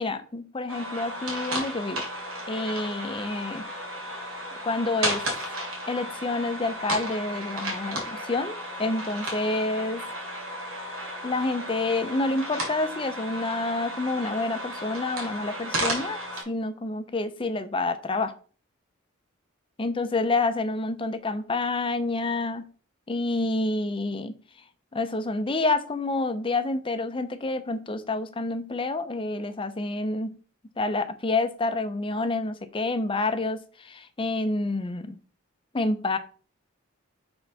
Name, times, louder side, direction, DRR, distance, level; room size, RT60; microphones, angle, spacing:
voice 1, 0.0-2.1 2.5-3.6 4.6-5.2 5.9-10.1 11.2-16.2 16.5-18.3 19.8-22.7 23.1-24.4 24.9-30.3 30.8-35.2 35.7-36.2, left 2 dB, 25° left, 10 dB, 0.6 m, -28 dB
sound 1, 0.7-16.4, equal, 75° right, 2.9 m, -34 dB
6.1 x 3.9 x 5.5 m, 0.41 s
head